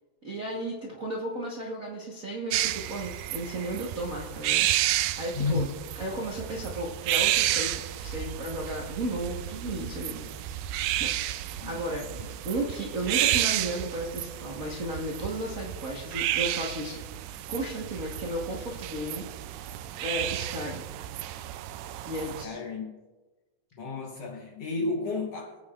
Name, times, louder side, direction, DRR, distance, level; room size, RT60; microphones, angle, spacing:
voice 1, 0.2-5.7 6.0-10.3 11.0-17.0 17.3-19.3 20.0-20.9 22.0-22.6, right 1 dB, 60° right, 0.8 m, -34 dB
sound 1, 2.5-22.5, right 13 dB, 85° right, 2.2 m, -31 dB
voice 2, 5.3-5.7 11.6-11.8 13.1-13.3 22.4-23.0 23.7-25.6, left 3 dB, 65° left, 1.6 m, -32 dB
22.0 x 8.9 x 2.5 m
omnidirectional pair, 3.9 m